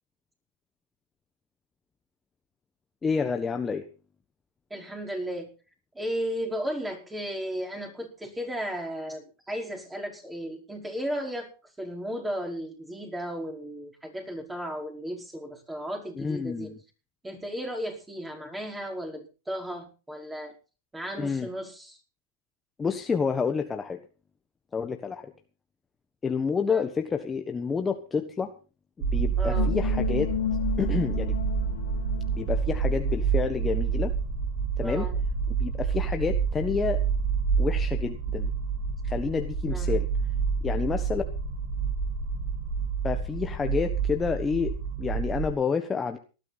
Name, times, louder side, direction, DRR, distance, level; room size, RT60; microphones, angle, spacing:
voice 1, 3.0-3.9 16.1-16.8 21.2-21.5 22.8-24.0 24.7-25.3 26.2-28.5 29.0-30.3 30.8-31.4 32.3-34.1 34.8-35.1 35.5-37.0 37.6-38.5 39.0-40.1 40.6-41.2 43.0-46.2, left 5 dB, 15° left, 6 dB, 1.3 m, -29 dB
voice 2, 4.7-5.5 5.9-11.5 11.8-16.7 17.2-20.5 20.9-22.0 26.7-26.8 29.4-29.7 34.8-35.2 39.7-40.0, equal, 10° right, 2 dB, 4.9 m, -35 dB
sound 1, 29.0-45.5, right 6 dB, 60° right, 7.3 m, -28 dB
sound 2, 29.5-33.5, left 10 dB, 80° left, 1.5 m, -33 dB
19.0 x 12.5 x 4.2 m, 0.35 s
hypercardioid pair, 125°, 0 cm